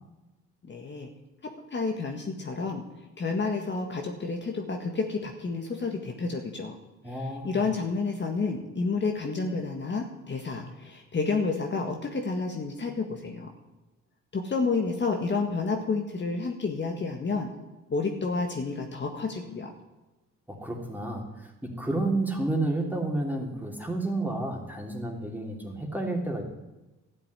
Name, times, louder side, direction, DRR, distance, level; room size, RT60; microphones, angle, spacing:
voice 1, 0.6-1.1 1.7-2.8 3.2-6.7 7.1-13.5 14.3-17.5 17.9-19.7, left 4 dB, 35° left, 2 dB, 1.9 m, -30 dB
voice 2, 7.0-7.6 20.5-26.4, right 2 dB, 5° right, 0 dB, 3.3 m, -31 dB
13.0 x 7.6 x 9.7 m, 1.1 s
cardioid pair, 90°, 30 cm